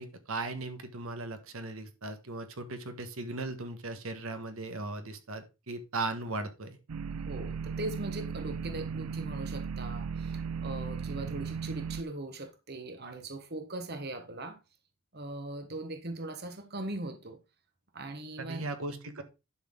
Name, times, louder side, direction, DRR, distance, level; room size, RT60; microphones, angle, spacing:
voice 1, 0.0-6.8 18.4-19.2, right 2 dB, 70° right, 1.4 m, -37 dB
sound 1, 6.9-12.0, right 6 dB, 85° right, 0.5 m, -36 dB
voice 2, 7.3-14.6 15.1-17.4 17.9-18.6, right 2 dB, 45° right, 1.3 m, -40 dB
11.5 x 6.0 x 3.8 m
head